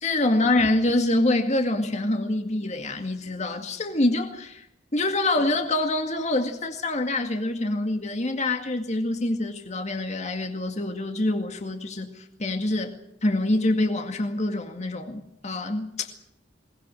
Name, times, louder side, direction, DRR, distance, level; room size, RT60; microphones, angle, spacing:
voice 1, 0.0-4.7 4.9-12.9 13.2-16.2, left 2 dB, 40° left, 2.1 m, -25 dB
22.0 x 20.0 x 7.7 m
head